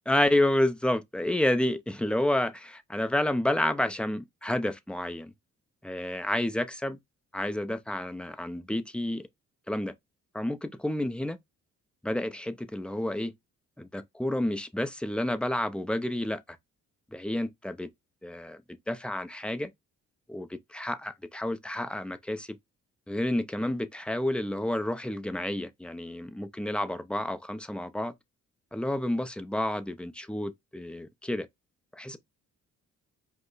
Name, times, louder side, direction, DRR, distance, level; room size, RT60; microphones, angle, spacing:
voice 1, 0.1-5.3 5.8-7.0 7.3-9.3 9.7-9.9 10.3-11.4 12.0-13.3 13.8-16.6 17.1-17.9 18.2-18.6 18.9-19.7 20.3-22.6 23.1-28.1 28.7-31.5 31.9-32.2, left 1 dB, 5° left, 0.6 m, -30 dB
5.1 x 2.2 x 3.9 m
cardioid pair, 90°, 30 cm